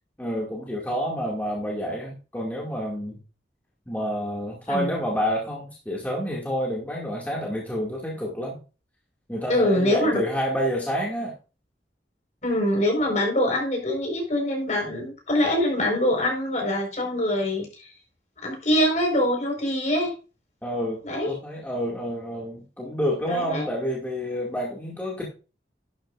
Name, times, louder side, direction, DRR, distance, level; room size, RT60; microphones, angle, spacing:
voice 1, 0.2-3.2 3.9-8.6 9.3-11.3 20.6-21.0 21.3-25.2, equal, 10° left, -4 dB, 2.2 m, -29 dB
voice 2, 9.5-10.2 12.4-17.9 18.4-20.1 21.0-21.3 23.2-23.6, left 1 dB, 40° left, 1 dB, 4.6 m, -24 dB
11.5 x 9.2 x 2.5 m, 0.33 s
head